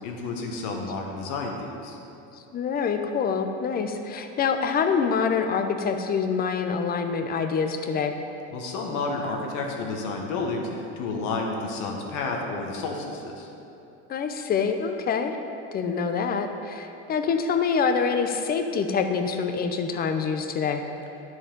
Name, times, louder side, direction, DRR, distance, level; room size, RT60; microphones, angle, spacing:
voice 1, 0.0-2.0 8.5-13.5, left 3 dB, 60° left, 1 dB, 1.3 m, -31 dB
voice 2, 2.5-8.1 14.1-15.4 15.7-20.8, left 6 dB, 30° left, 7 dB, 0.5 m, -26 dB
10.5 x 4.7 x 3.8 m, 2.9 s
supercardioid pair, 115°, 34 cm